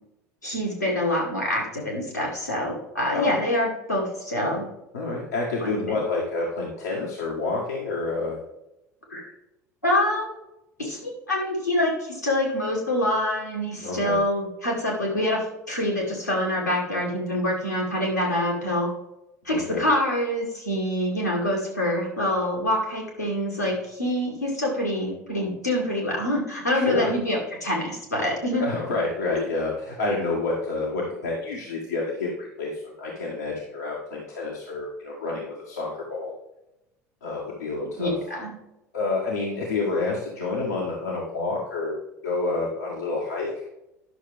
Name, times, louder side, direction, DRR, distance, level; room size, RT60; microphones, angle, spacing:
voice 1, 0.4-4.7 5.6-6.0 9.1-9.2 9.8-10.3 10.8-18.9 19.4-28.7 38.0-38.5, left 1 dB, 90° left, -3 dB, 2.6 m, -26 dB
voice 2, 4.9-8.4 13.8-14.2 19.5-19.8 26.7-27.1 28.5-36.3 37.2-38.2 38.9-42.0 42.2-43.6, left 3 dB, 75° left, -4 dB, 1.6 m, -28 dB
11.0 x 6.5 x 3.4 m, 0.90 s
figure-of-eight pair, 65°, 9 cm